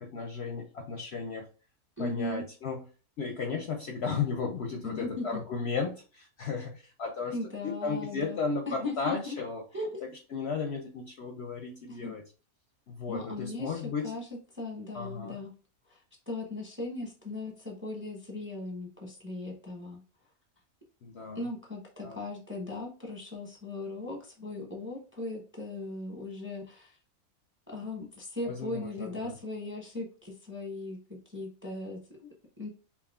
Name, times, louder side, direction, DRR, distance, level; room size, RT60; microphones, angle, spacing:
voice 1, 0.0-1.5 2.0-2.8 3.2-7.3 7.6-9.7 10.0-12.2 12.9-14.1 14.9-15.4 21.0-21.4 22.0-22.2 28.5-29.4, left 5 dB, 60° left, 3 dB, 0.7 m, -34 dB
voice 2, 2.0-2.4 4.8-5.4 7.3-8.4 8.7-9.3 9.7-10.0 11.9-12.2 13.1-14.3 14.5-15.5 15.9-16.0 16.3-20.0 21.3-27.0 27.7-32.7, left 2 dB, 10° right, 0 dB, 0.7 m, -38 dB
4.8 x 2.9 x 2.3 m, 0.37 s
omnidirectional pair, 1.5 m